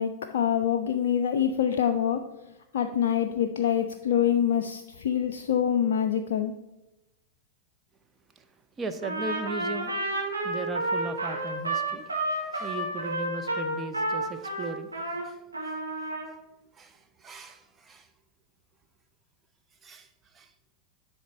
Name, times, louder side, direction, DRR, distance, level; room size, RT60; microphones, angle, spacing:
voice 1, 0.0-2.2 2.7-6.5, left 9 dB, 60° left, 0.4 m, -25 dB
voice 2, 8.8-10.0 10.4-16.1 16.7-18.1 19.8-20.1 20.3-20.5, right 3 dB, 20° right, 0.6 m, -38 dB
Trumpet, 9.0-15.2 15.5-16.3, right 2 dB, 80° right, 1.6 m, -30 dB
10.0 x 3.6 x 4.2 m
figure-of-eight pair, 90°, 0 cm